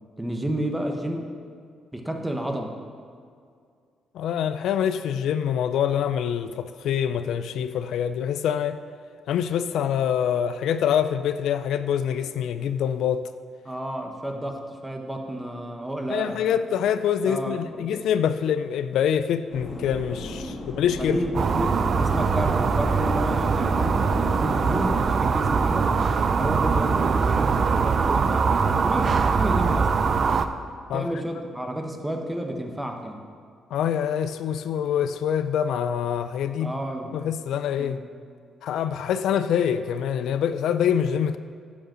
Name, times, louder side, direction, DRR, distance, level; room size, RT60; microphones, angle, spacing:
voice 1, 0.2-1.3 1.9-2.8 13.6-16.4 17.2-17.9 20.4-25.9 26.3-30.1 30.9-33.2 36.6-37.1 37.8-38.0, right 1 dB, 10° right, 3 dB, 1.1 m, -31 dB
voice 2, 4.1-8.8 9.3-13.2 16.1-21.2 30.9-31.1 33.7-36.7 37.1-38.0 38.6-41.4, left 8 dB, 80° left, 11 dB, 0.3 m, -25 dB
sound 1, 19.5-24.9, left 1 dB, 35° left, 2.2 m, -35 dB
sound 2, 21.3-30.4, right 5 dB, 45° right, 0.5 m, -22 dB
9.8 x 5.3 x 6.1 m, 2.2 s
cardioid pair, 90°, 0 cm